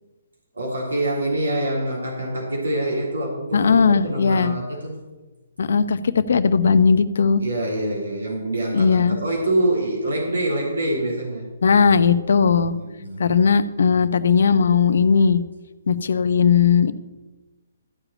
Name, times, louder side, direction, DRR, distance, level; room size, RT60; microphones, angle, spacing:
voice 1, 0.5-5.0 7.4-11.5 12.6-13.4, right 1 dB, 90° right, -2 dB, 3.2 m, -25 dB
voice 2, 3.5-4.5 5.6-7.4 8.7-9.2 11.6-12.7 13.2-15.4 15.9-16.9, left 6 dB, 70° left, 12 dB, 0.8 m, -17 dB
14.0 x 4.9 x 8.8 m, 1.2 s
hypercardioid pair, 140°, 0 cm